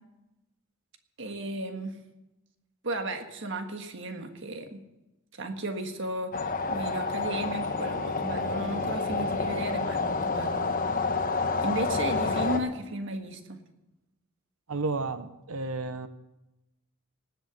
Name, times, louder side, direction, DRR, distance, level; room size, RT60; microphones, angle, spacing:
voice 1, 1.2-2.0 2.8-4.8 5.3-10.7 11.6-13.6, right 1 dB, 55° right, 6 dB, 1.6 m, -34 dB
sound 1, 6.3-12.6, left 3 dB, 40° left, 1.0 m, -29 dB
voice 2, 14.7-16.1, right 3 dB, 75° right, 11 dB, 0.9 m, -32 dB
18.5 x 8.1 x 7.0 m, 0.97 s
head